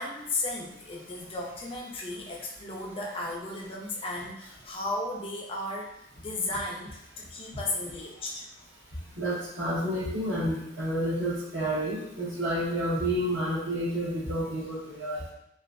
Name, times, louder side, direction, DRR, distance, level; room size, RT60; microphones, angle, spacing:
voice 1, 0.0-8.4, left 2 dB, 30° left, -1 dB, 0.5 m, -35 dB
voice 2, 9.2-15.3, equal, 75° right, -7 dB, 1.2 m, -30 dB
3.1 x 2.4 x 2.5 m, 0.81 s
head